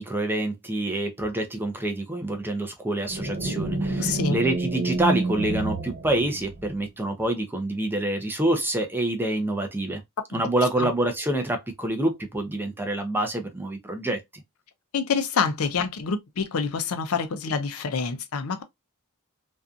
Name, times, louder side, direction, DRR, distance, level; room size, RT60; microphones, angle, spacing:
voice 1, 0.0-10.0 10.3-14.2, right 1 dB, 10° right, 0.5 m, -27 dB
sound 1, 3.1-6.8, right 3 dB, 55° right, 1.1 m, -29 dB
voice 2, 4.0-4.4 10.3-10.4 10.8-10.9 14.9-18.6, left 5 dB, 70° left, 0.5 m, -27 dB
2.6 x 2.3 x 2.4 m
head